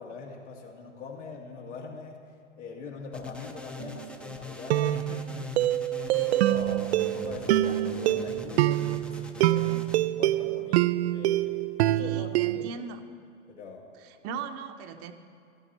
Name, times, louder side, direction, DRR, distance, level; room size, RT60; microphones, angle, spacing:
voice 1, 0.0-2.2 2.6-9.8 10.2-11.6 11.8-12.8 13.5-13.9, left 4 dB, 75° left, -1 dB, 2.2 m, -42 dB
sound 1, 3.1-10.0, left 3 dB, 5° left, 0.7 m, -42 dB
sound 2, 3.8-4.1 4.7-12.7, right 15 dB, 60° right, 0.5 m, -26 dB
voice 2, 11.9-13.0 14.0-15.1, right 6 dB, 40° right, 7 dB, 1.0 m, -39 dB
14.0 x 12.5 x 4.2 m, 2.4 s
hypercardioid pair, 100°, 37 cm